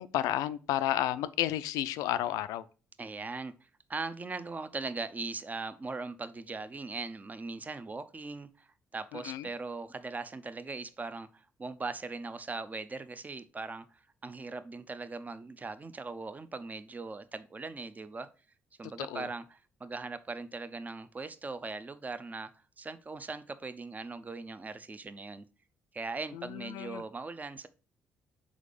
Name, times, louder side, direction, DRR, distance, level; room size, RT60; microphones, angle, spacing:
voice 1, 0.0-2.6 9.1-9.5 19.0-19.3 26.3-27.0, left 13 dB, 70° left, 0.4 m, -32 dB
voice 2, 3.0-8.7 8.9-18.3 18.8-22.5 22.8-25.4 25.9-27.7, right 3 dB, 25° right, 0.6 m, -40 dB
5.0 x 4.1 x 5.0 m
figure-of-eight pair, 45°, 6 cm